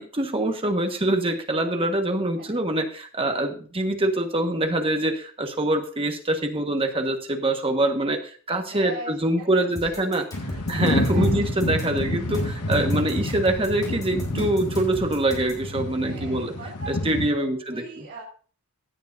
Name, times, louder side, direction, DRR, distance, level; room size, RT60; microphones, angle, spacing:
voice 1, 0.0-10.2 10.7-16.5 16.9-18.1, right 1 dB, 25° right, 5 dB, 1.4 m, -25 dB
voice 2, 8.7-10.2 10.5-11.4 16.0-18.2, right 1 dB, 60° right, -4 dB, 2.9 m, -40 dB
sound 1, 9.8-15.7, equal, 20° left, 3.9 m, -38 dB
sound 2, 10.3-17.3, left 1 dB, 85° left, 1.4 m, -28 dB
16.5 x 9.2 x 2.6 m, 0.41 s
head